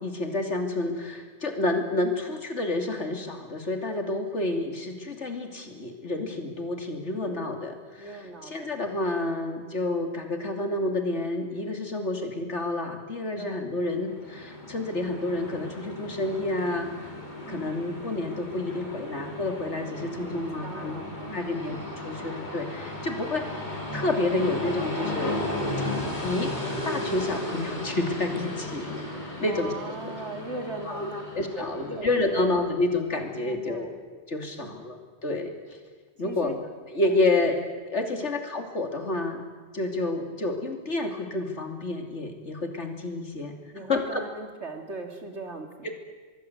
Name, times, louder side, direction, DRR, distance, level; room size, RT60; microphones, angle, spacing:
voice 1, 0.0-17.1 17.5-21.0 21.3-23.4 23.9-25.4 26.2-26.5 26.8-28.9 29.4-29.7 30.9-35.8 36.2-36.5 36.9-37.6 37.9-39.4 39.7-43.5 43.9-44.2 45.8-45.9, left 2 dB, 75° left, 4 dB, 3.2 m, -29 dB
voice 2, 8.0-9.0 13.4-13.6 17.4-17.8 19.6-21.7 29.4-31.2 31.5-32.5 33.4-33.9 34.6-34.8 36.2-36.6 37.0-37.2 38.0-38.3 43.7-45.9, right 2 dB, 75° right, 4 dB, 3.3 m, -39 dB
Train, 13.9-32.5, left 1 dB, 40° left, 4.1 m, -35 dB
24.5 x 22.0 x 8.1 m, 1.4 s
omnidirectional pair, 1.2 m